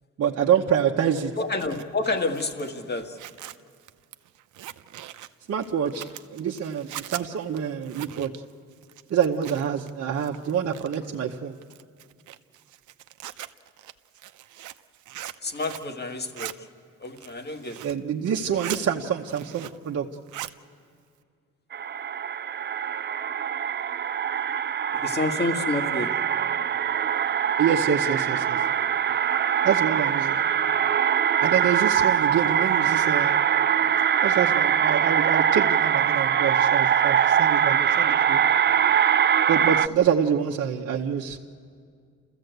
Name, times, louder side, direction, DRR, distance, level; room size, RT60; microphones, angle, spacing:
voice 1, 0.2-1.3 5.5-8.3 9.1-11.5 17.8-20.1 27.6-28.6 29.6-30.4 31.4-33.4 34.2-38.4 39.5-41.4, right 8 dB, 55° right, 0 dB, 1.0 m, -26 dB
Zipper (clothing), 1.3-9.9 10.2-11.2 11.6-15.9 16.2-16.5 17.0-18.0 18.4-18.8 19.2-19.9 20.1-20.6, right 13 dB, 75° right, 0.8 m, -41 dB
voice 2, 1.4-3.2 15.4-16.5 17.0-17.8 25.0-26.1, left 2 dB, 35° left, 6 dB, 1.9 m, -29 dB
sound 1, 21.7-39.9, right 8 dB, 35° right, 0.5 m, -23 dB
29.5 x 15.0 x 8.0 m, 2.2 s
cardioid pair, 90°, 30 cm